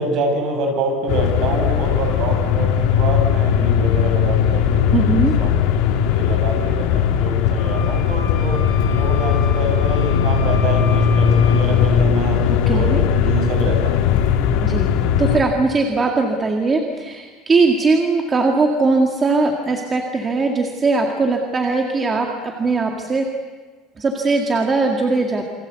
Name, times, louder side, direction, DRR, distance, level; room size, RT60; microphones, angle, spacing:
voice 1, 0.0-5.5 6.1-14.0, right 2 dB, 50° right, 4 dB, 6.7 m, -26 dB
sound 1, 1.1-15.4, left 8 dB, 80° left, 3.1 m, -18 dB
voice 2, 4.9-5.3 12.5-13.0 14.6-23.3 24.0-25.4, right 3 dB, 20° right, 2 dB, 2.0 m, -20 dB
sound 2, 7.6-11.7, left 11 dB, 65° left, 6.2 m, -33 dB
28.5 x 24.0 x 8.2 m, 1.4 s
cardioid pair, 175°, 0 cm